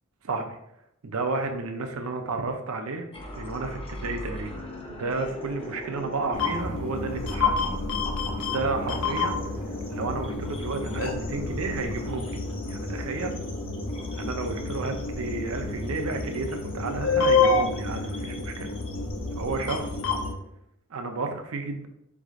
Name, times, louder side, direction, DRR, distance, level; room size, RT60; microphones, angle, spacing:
voice 1, 0.2-0.6 1.0-3.1 3.4-7.7 8.4-9.4 9.9-12.4 12.7-13.3 14.2-18.7 19.4-19.9 20.9-21.9, right 3 dB, 80° right, 5 dB, 0.6 m, -32 dB
sound 1, 3.1-20.3, left 1 dB, 25° left, 0.6 m, -40 dB
sound 2, 6.3-20.3, left 4 dB, 70° left, 0.6 m, -29 dB
4.7 x 2.4 x 3.6 m, 0.80 s
head